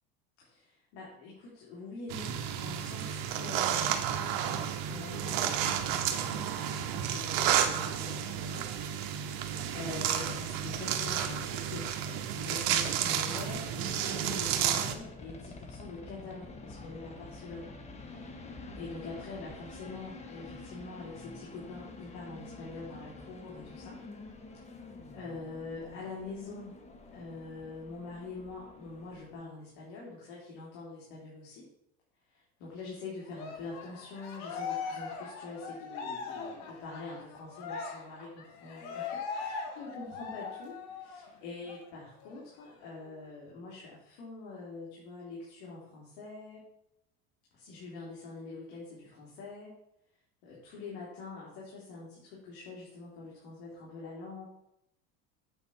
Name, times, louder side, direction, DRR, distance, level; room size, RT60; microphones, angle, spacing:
voice 1, 0.4-8.8 9.7-18.3 18.8-24.0 25.1-26.8 27.1-31.7 32.3-46.7 47.5-49.7 50.4-54.4, left 3 dB, 80° left, -5 dB, 3.2 m, -45 dB
sound 1, 2.1-14.9, right 9 dB, 80° right, 1.1 m, -31 dB
sound 2, 12.0-29.3, left 3 dB, 20° left, 1.3 m, -48 dB
Cheering, 33.3-41.3 41.7-41.8 42.2-43.2, left 5 dB, 65° left, 1.8 m, -40 dB
8.7 x 4.3 x 6.2 m, 0.79 s
supercardioid pair, 125°, 30 cm